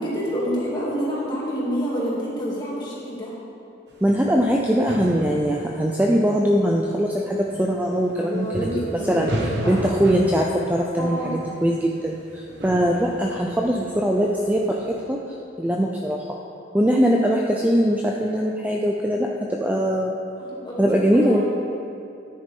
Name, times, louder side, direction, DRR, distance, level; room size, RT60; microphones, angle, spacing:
voice 1, 0.0-3.3 8.2-9.8 11.0-11.3 20.5-21.4, equal, 25° left, -6 dB, 2.4 m, -28 dB
sound 1, 3.9-15.1, right 1 dB, 60° right, 1.1 m, -35 dB
voice 2, 4.0-16.3 16.7-20.2 20.8-21.4, equal, 10° right, -1 dB, 0.4 m, -22 dB
13.0 x 9.9 x 3.6 m, 2.7 s
head